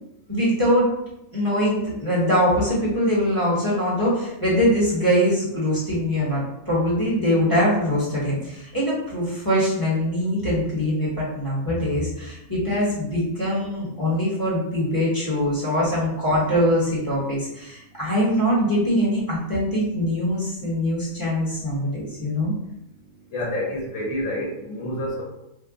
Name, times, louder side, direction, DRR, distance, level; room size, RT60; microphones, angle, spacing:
voice 1, 0.3-0.9 1.3-22.5, equal, 15° left, -8 dB, 1.0 m, -23 dB
voice 2, 23.3-25.3, left 1 dB, 65° left, -2 dB, 1.1 m, -28 dB
2.8 x 2.2 x 3.6 m, 0.85 s
omnidirectional pair, 1.5 m